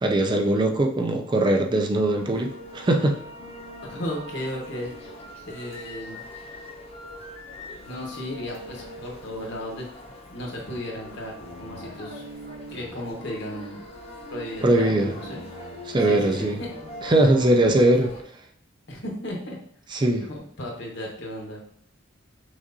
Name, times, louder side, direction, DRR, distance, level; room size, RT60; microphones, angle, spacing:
voice 1, 0.0-3.2 14.6-15.1 15.9-16.6 17.0-18.1 19.9-20.3, right 1 dB, 25° right, 4 dB, 0.4 m, -21 dB
sound 1, 2.2-18.2, left 1 dB, 30° left, 0.8 m, -41 dB
voice 2, 3.9-4.9 5.4-6.2 7.8-9.9 10.3-12.2 12.7-13.8 14.3-15.4 16.0-16.7 18.9-19.6 20.3-21.6, left 1 dB, 65° left, -2 dB, 1.2 m, -35 dB
6.1 x 2.5 x 2.7 m, 0.67 s
head